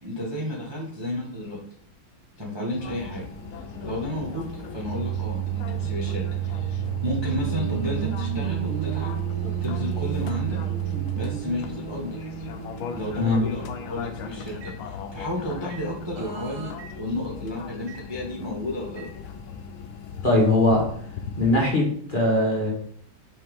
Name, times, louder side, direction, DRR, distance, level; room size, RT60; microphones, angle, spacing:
voice 1, 0.0-1.6 2.4-3.2 3.8-4.5 4.7-10.6 11.1-12.3 12.9-19.1, left 1 dB, 20° right, -5 dB, 0.9 m, -32 dB
Microwave oven, 2.7-15.3 15.7-15.9 16.8-16.9 17.9-18.0 19.0-19.1, right 16 dB, 55° right, 1.1 m, -32 dB
sound 1, 2.8-21.7, left 6 dB, 85° left, 1.5 m, -39 dB
sound 2, 7.4-13.5 16.2-16.7, right 4 dB, 90° right, 2.2 m, -36 dB
voice 2, 20.2-20.8 21.4-22.7, left 1 dB, 25° left, -4 dB, 1.6 m, -20 dB
5.6 x 5.4 x 3.6 m, 0.62 s
omnidirectional pair, 2.2 m